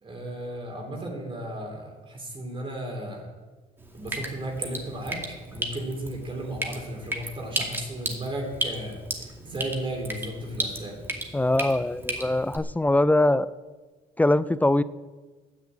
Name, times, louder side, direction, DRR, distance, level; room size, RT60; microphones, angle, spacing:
voice 1, 0.0-3.3 3.9-5.2 5.5-9.0 9.4-11.0, right 1 dB, 30° right, 1 dB, 3.1 m, -34 dB
Drip, 3.8-12.6, right 1 dB, 15° right, 2.4 m, -34 dB
voice 2, 11.3-13.5 14.2-14.8, left 1 dB, 10° left, 16 dB, 0.4 m, -22 dB
10.5 x 10.0 x 8.7 m, 1.3 s
cardioid pair, 110°, 17 cm